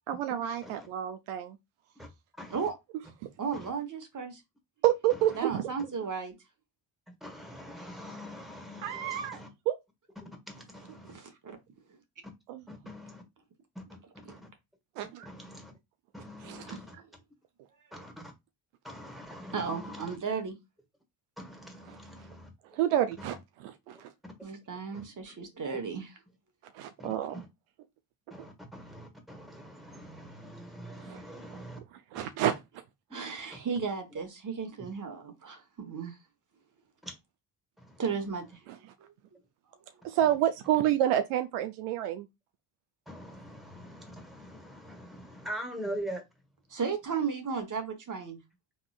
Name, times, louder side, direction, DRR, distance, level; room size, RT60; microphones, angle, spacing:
voice 1, 0.1-1.6 4.8-5.7 8.8-9.4 9.7-9.8 12.5-12.6 15.0-15.3 16.4-16.6 22.7-24.1 26.7-27.3 31.0-31.2 32.1-32.6 38.7-38.8 40.0-42.3, right 12 dB, 75° right, 0.6 m, -29 dB
voice 2, 2.4-2.7 3.5-3.7 7.1-9.5 10.2-11.1 12.7-13.2 13.7-13.8 14.3-14.5 15.2-15.7 16.1-16.9 17.9-18.3 18.8-20.2 21.4-22.5 23.2-23.4 23.9-24.3 24.9-25.0 25.7-25.8 27.0-27.5 28.3-31.8 32.1-32.3 34.8-34.9 37.0-37.2 37.8-38.0 43.1-46.2, equal, ahead, 1.6 m, -43 dB
voice 3, 3.4-4.4 5.4-6.3 11.1-11.6 16.7-16.8 19.5-20.6 24.4-26.1 33.1-36.2 38.0-38.6 39.0-39.1 46.7-48.4, right 5 dB, 40° right, 1.1 m, -34 dB
3.6 x 3.1 x 2.3 m
hypercardioid pair, 50°, 50 cm